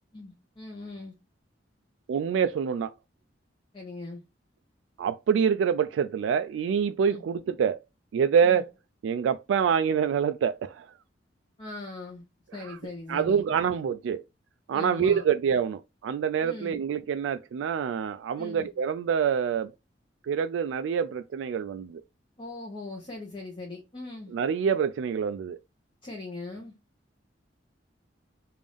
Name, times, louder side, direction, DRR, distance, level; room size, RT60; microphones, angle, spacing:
voice 1, 0.1-1.2 3.7-4.2 7.1-7.2 8.4-8.6 11.6-12.3 12.5-13.4 14.7-15.3 16.4-16.8 18.4-18.7 22.4-24.3 26.0-26.7, left 2 dB, 30° left, 0.9 m, -40 dB
voice 2, 2.1-2.9 5.0-7.8 8.1-8.7 9.0-10.8 13.1-14.2 14.7-19.7 20.3-22.0 24.3-25.6, right 7 dB, 85° right, 0.3 m, -26 dB
3.4 x 2.5 x 3.4 m
head